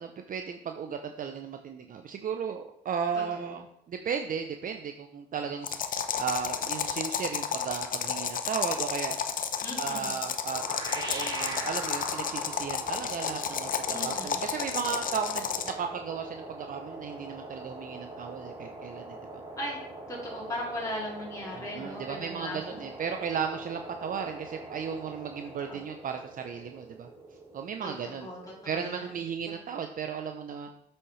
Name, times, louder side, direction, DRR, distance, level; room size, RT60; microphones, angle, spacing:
voice 1, 0.0-9.2 9.8-10.6 10.9-19.4 21.6-27.1 27.5-28.3 28.6-30.7, right 7 dB, 50° right, 6 dB, 0.6 m, -35 dB
sound 1, 5.6-15.8, left 7 dB, 50° left, 0.7 m, -32 dB
voice 2, 9.6-10.1 13.9-14.4 19.6-22.6 25.7-25.8 27.8-29.1, left 1 dB, 20° left, -4 dB, 2.5 m, -38 dB
sound 2, 10.5-29.3, right 2 dB, 30° right, 2.6 m, -43 dB
7.7 x 6.3 x 3.2 m, 0.74 s
supercardioid pair, 75°, 17 cm